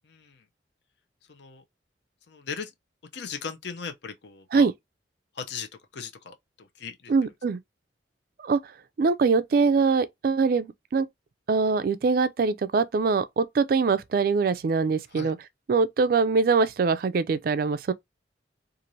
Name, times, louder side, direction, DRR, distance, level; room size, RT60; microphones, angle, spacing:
voice 1, 0.1-0.4 1.3-1.6 2.3-2.7 3.1-4.7 5.3-5.7 5.9-7.1 15.1-15.3, left 6 dB, 70° left, 0.6 m, -38 dB
voice 2, 7.1-7.6 8.4-8.6 9.0-11.1 11.5-15.4 15.7-17.9, right 4 dB, 50° right, 0.3 m, -23 dB
2.6 x 2.5 x 3.0 m
head